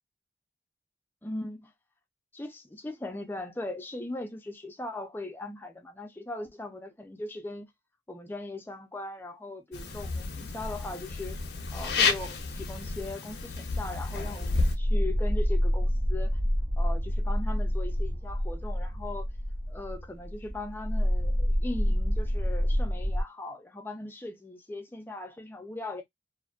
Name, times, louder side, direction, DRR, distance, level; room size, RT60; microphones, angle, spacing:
voice 1, 1.2-1.7 2.3-7.7 8.1-11.4 11.7-16.4 16.8-19.3 19.7-26.0, left 2 dB, 10° left, 0.4 m, -39 dB
sound 1, 9.7-14.8, left 4 dB, 60° left, 0.5 m, -31 dB
sound 2, 14.4-23.2, equal, 55° right, 0.6 m, -28 dB
2.5 x 2.2 x 2.3 m
head